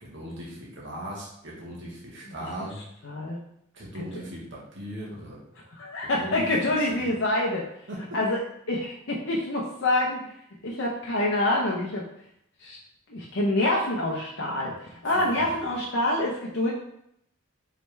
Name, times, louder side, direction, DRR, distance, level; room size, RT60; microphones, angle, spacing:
voice 1, 0.0-2.8 3.7-5.4 6.0-7.1 7.9-8.2 15.1-15.6, equal, 60° right, -4 dB, 1.2 m, -39 dB
voice 2, 3.0-3.4 4.1-4.2 5.8-7.6 8.1-8.4 8.7-10.2 10.6-12.1 12.6-12.8 13.1-14.7 15.0-16.7, left 1 dB, 65° left, -3 dB, 0.7 m, -26 dB
4.8 x 3.3 x 3.2 m, 0.74 s
head